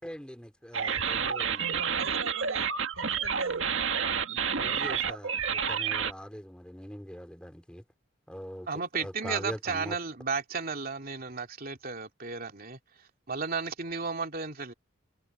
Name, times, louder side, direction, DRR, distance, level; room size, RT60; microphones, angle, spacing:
voice 1, 0.0-1.8 4.3-7.8 8.3-10.0, equal, 5° left, 3.6 m, -42 dB
sound 1, 0.7-6.1, right 7 dB, 65° right, 2.0 m, -29 dB
voice 2, 1.6-3.8, right 3 dB, 85° right, 6.9 m, -42 dB
voice 3, 8.7-12.8 13.3-14.7, right 5 dB, 45° right, 3.0 m, -33 dB
head